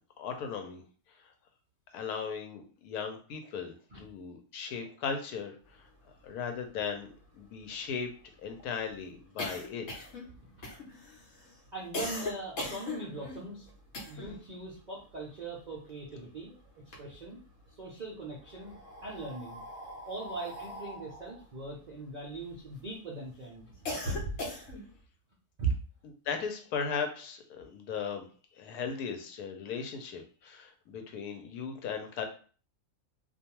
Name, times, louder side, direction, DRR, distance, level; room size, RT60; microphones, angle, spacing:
voice 1, 0.2-0.8 1.2-1.3 1.9-5.9 6.2-7.1 7.4-8.1 8.4-9.9 26.2-32.3, left 6 dB, 85° left, 5 dB, 1.1 m, -37 dB
sound 1, 6.3-6.4 6.6-6.7 7.0-14.5 14.8-16.3 16.7-17.6 18.4-22.8 23.3-25.0, left 1 dB, 65° left, 1.1 m, -40 dB
voice 2, 11.7-13.7 14.1-16.6 17.0-17.4 17.8-18.8 19.0-19.6 20.0-24.2 25.6-25.8, right 4 dB, 90° right, -4 dB, 0.3 m, -39 dB
2.5 x 2.3 x 2.9 m, 0.40 s
omnidirectional pair, 1.6 m